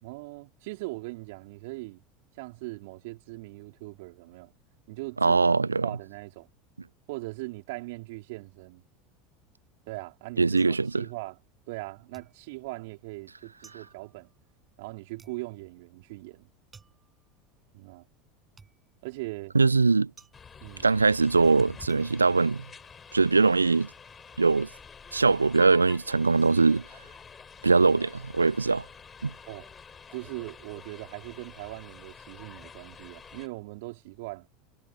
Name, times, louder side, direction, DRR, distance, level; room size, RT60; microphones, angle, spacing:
voice 1, 0.0-2.0 2.4-4.5 4.9-5.4 5.8-6.5 7.1-8.8 9.9-11.4 11.7-14.3 14.8-16.5 17.7-18.0 19.0-19.5 20.6-20.9 29.5-29.7 30.1-34.5, right 23 dB, 60° right, 4.2 m, -40 dB
voice 2, 5.2-5.9 10.4-11.0 19.5-20.1 20.8-22.6 23.1-23.9 24.4-24.7 25.1-26.8 27.6-28.9 29.2-29.3, right 4 dB, 90° right, 0.4 m, -22 dB
sound 1, 9.7-11.8 12.1-23.3 23.6-24.2, right 4 dB, 20° right, 8.0 m, -59 dB
sound 2, 20.3-33.5, left 6 dB, 25° left, 4.7 m, -48 dB
figure-of-eight pair, 75°, 0 cm